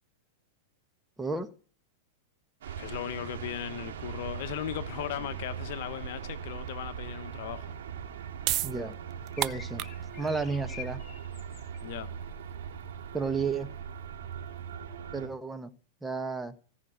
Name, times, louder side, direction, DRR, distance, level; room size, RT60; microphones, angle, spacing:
voice 1, 1.2-1.5 8.6-9.0 9.4-9.9 10.2-11.0 13.1-13.7 15.1-15.7 16.0-16.6, right 4 dB, 10° right, 1.4 m, -32 dB
sound 1, 2.6-15.3, right 7 dB, 70° right, 2.9 m, -40 dB
voice 2, 2.7-7.7 11.8-12.1, left 13 dB, 60° left, 1.0 m, -37 dB
sound 2, 8.0-14.7, right 15 dB, 40° right, 0.6 m, -37 dB
sound 3, 9.3-11.8, left 10 dB, 35° left, 2.1 m, -47 dB
17.0 x 5.9 x 9.3 m
hypercardioid pair, 110°, 0 cm